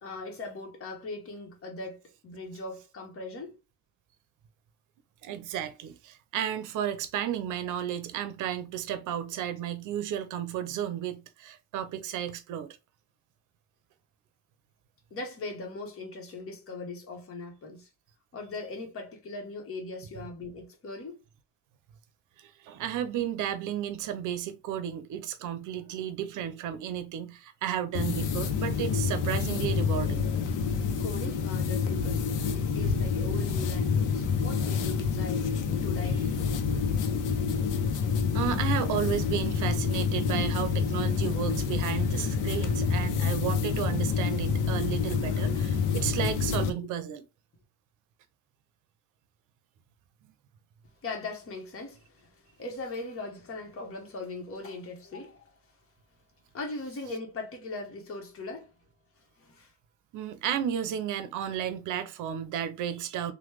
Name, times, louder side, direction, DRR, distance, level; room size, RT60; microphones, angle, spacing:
voice 1, 0.0-3.6 15.1-17.9 18.3-21.2 31.0-35.5 35.8-36.5 51.0-55.5 56.5-58.7 59.4-59.7, left 2 dB, 45° left, 1.1 m, -40 dB
voice 2, 5.2-12.8 22.4-30.3 38.3-47.2 60.1-63.3, right 10 dB, 85° right, 0.6 m, -33 dB
sound 1, 27.9-46.7, left 6 dB, 85° left, 0.6 m, -28 dB
3.0 x 2.2 x 3.2 m
cardioid pair, 90°, 30 cm